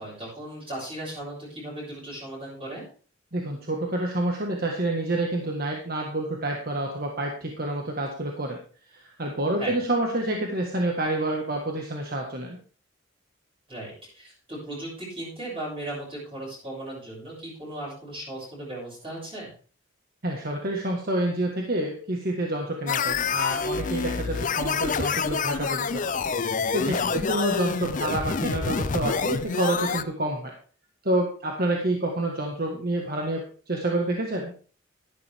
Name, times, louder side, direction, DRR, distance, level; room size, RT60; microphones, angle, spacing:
voice 1, 0.0-2.8 9.6-9.8 13.7-19.5 26.9-27.3, right 1 dB, 25° right, -7 dB, 6.9 m, -37 dB
voice 2, 3.3-8.6 8.9-12.6 20.2-26.1 26.7-30.5 31.0-33.4 33.7-34.5, right 1 dB, 50° right, 1 dB, 1.6 m, -28 dB
sound 1, 22.9-30.0, left 5 dB, 40° left, 0.5 m, -27 dB
12.0 x 11.5 x 3.5 m, 0.41 s
head